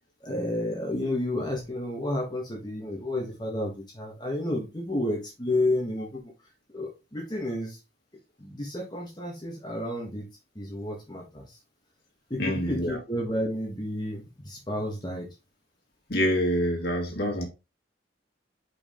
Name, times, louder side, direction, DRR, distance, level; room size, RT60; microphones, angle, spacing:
voice 1, 0.2-6.3 6.7-7.8 8.4-10.3 10.6-11.6 12.3-15.3, left 1 dB, 25° left, 1.6 m, -31 dB
voice 2, 12.4-13.0 16.1-17.4, equal, 55° left, 2.3 m, -26 dB
5.3 x 4.9 x 3.8 m
head